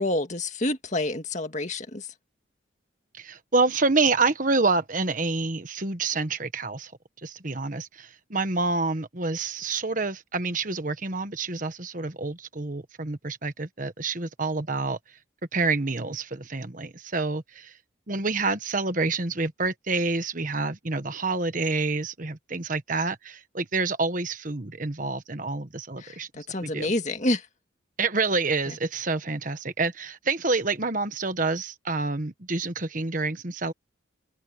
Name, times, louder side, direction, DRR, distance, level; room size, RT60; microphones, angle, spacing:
voice 1, 0.0-2.1 26.0-26.2 26.5-27.5 28.7-28.8, left 1 dB, 35° left, 2.0 m, -28 dB
voice 2, 3.2-6.9 7.2-15.0 15.5-17.7 18.1-26.3 26.6-26.9 28.0-33.7, right 3 dB, 45° right, 1.3 m, -28 dB
open air
head